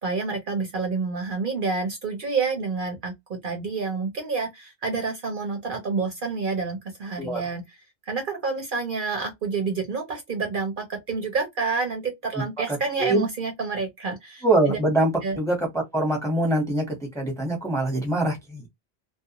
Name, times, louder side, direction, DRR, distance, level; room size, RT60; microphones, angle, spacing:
voice 1, 0.0-7.6 8.0-14.8 15.2-15.4, right 4 dB, 55° right, 0.8 m, -28 dB
voice 2, 12.7-13.3 14.4-15.1 15.4-15.6 15.9-18.7, right 1 dB, 5° left, 1.0 m, -24 dB
2.3 x 2.1 x 2.8 m
omnidirectional pair, 1.1 m